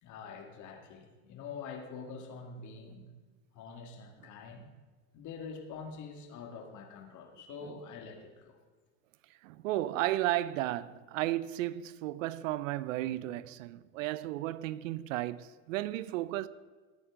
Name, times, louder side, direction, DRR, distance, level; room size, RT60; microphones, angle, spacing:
voice 1, 0.0-3.1 3.5-4.7 5.1-8.6, left 5 dB, 45° left, 2.1 m, -45 dB
voice 2, 9.4-16.5, right 15 dB, 75° right, 0.6 m, -34 dB
19.0 x 8.9 x 3.8 m
hypercardioid pair, 95°, 39 cm